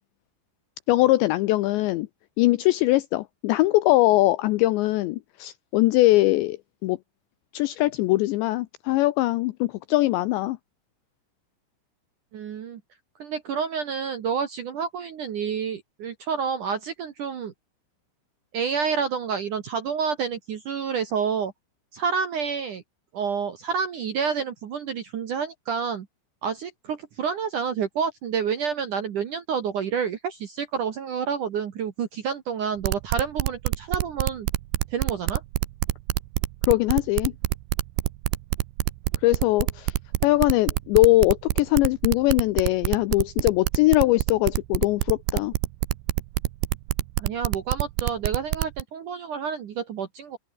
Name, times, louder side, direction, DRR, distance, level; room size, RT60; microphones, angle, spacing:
voice 1, 0.9-2.1 2.4-6.6 6.8-7.0 7.5-10.6 36.7-37.3 39.2-39.9 40.2-45.5, left 18 dB, 90° left, 2.6 m, -21 dB
voice 2, 12.3-12.8 13.2-17.5 18.5-21.5 21.9-22.8 23.1-26.1 26.4-34.5 34.9-35.4 47.2-50.4, right 6 dB, 60° right, 2.1 m, -29 dB
sound 1, 32.8-48.8, right 18 dB, 85° right, 2.3 m, -25 dB
open air
omnidirectional pair, 5.9 m